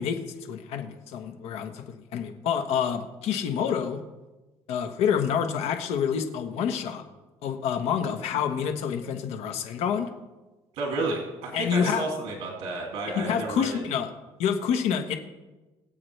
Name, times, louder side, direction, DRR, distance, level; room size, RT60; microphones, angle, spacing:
voice 1, 0.0-4.0 4.7-7.0 7.4-10.1 11.5-12.0 13.1-14.1 14.4-15.2, left 7 dB, 75° left, 6 dB, 1.4 m, -28 dB
voice 2, 10.7-13.9, right 3 dB, 75° right, -1 dB, 2.8 m, -31 dB
22.5 x 7.8 x 3.4 m, 1.1 s
cardioid pair, 155°, 10 cm